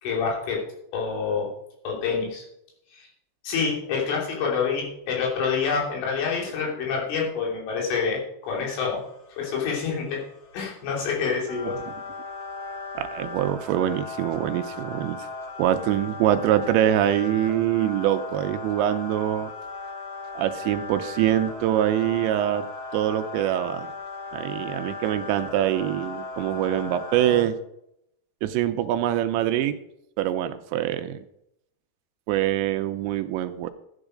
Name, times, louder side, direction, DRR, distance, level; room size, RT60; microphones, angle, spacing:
voice 1, 0.0-0.6 0.9-1.5 1.9-2.5 2.9-3.1 3.4-9.0 9.4-10.2 10.5-11.8, left 5 dB, 90° left, -2 dB, 5.6 m, -27 dB
sound 1, 8.5-27.4, left 3 dB, 70° left, 0.8 m, -37 dB
voice 2, 13.0-15.2 15.6-19.5 20.3-22.7 22.9-23.9 24.3-27.6 28.4-29.8 30.2-31.2 32.3-33.7, right 12 dB, 80° right, 9 dB, 2.8 m, -24 dB
13.0 x 9.1 x 5.0 m, 0.78 s
omnidirectional pair, 5.4 m